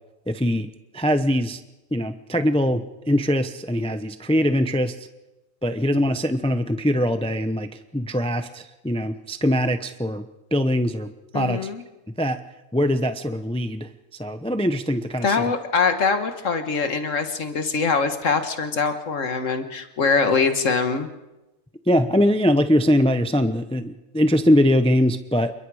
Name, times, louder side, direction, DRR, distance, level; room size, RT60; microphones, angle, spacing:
voice 1, 0.3-1.6 1.9-5.1 5.6-10.2 10.5-11.7 12.2-12.4 12.7-13.9 14.2-15.5 21.9-25.5, equal, 5° left, 9 dB, 0.7 m, -22 dB
voice 2, 11.3-11.8 15.2-21.1, left 5 dB, 85° left, 7 dB, 1.8 m, -23 dB
28.0 x 22.5 x 4.9 m, 1.0 s
omnidirectional pair, 1.3 m